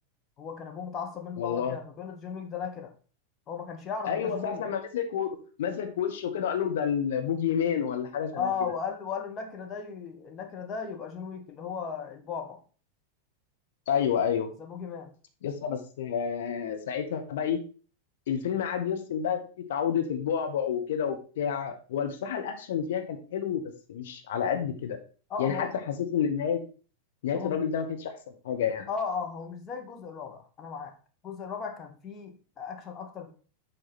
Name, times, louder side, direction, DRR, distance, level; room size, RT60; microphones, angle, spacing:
voice 1, 0.4-2.9 3.5-4.7 8.4-12.6 14.6-15.1 25.3-25.8 27.3-27.6 28.9-31.0 31.2-33.3, left 6 dB, 25° left, 3 dB, 1.4 m, -36 dB
voice 2, 1.4-1.8 4.0-5.3 5.6-8.5 13.9-14.5 15.4-17.6 18.3-19.4 19.7-23.6 23.9-25.0 25.4-26.6 27.2-28.9, left 8 dB, 55° left, 5 dB, 1.2 m, -29 dB
7.8 x 4.7 x 4.2 m, 0.38 s
figure-of-eight pair, 90°, 0 cm